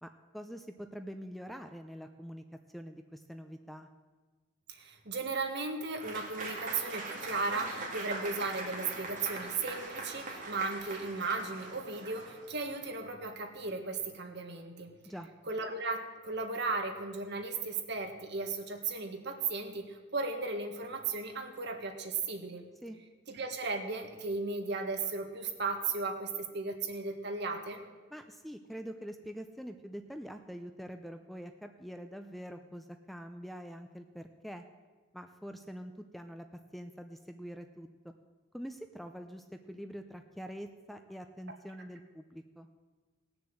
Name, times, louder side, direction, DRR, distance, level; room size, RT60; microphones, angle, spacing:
voice 1, 0.0-2.4 2.7-3.9 15.1-15.3 22.8-23.0 28.1-34.6 35.1-36.5 36.7-38.1 38.5-42.7, equal, ahead, 7 dB, 0.5 m, -45 dB
voice 2, 4.7-14.9 15.5-22.6 23.3-27.8, right 3 dB, 60° right, 4 dB, 1.6 m, -36 dB
Applause / Crowd, 6.0-12.8, right 3 dB, 45° right, 2.5 m, -42 dB
18.0 x 6.9 x 7.8 m, 1.3 s
head